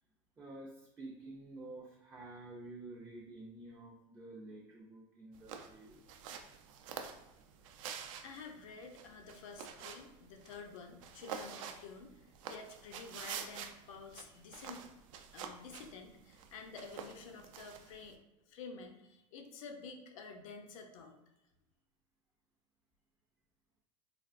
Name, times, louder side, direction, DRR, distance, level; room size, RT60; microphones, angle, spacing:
voice 1, 0.4-6.3, right 2 dB, 15° right, -3 dB, 0.3 m, -50 dB
sound 1, 5.3-18.1, right 7 dB, 80° right, 0.4 m, -48 dB
voice 2, 8.2-14.9 15.3-18.2 18.5-21.1, left 4 dB, 85° left, 4 dB, 0.6 m, -50 dB
3.3 x 2.3 x 2.4 m, 0.95 s
supercardioid pair, 140°, 17 cm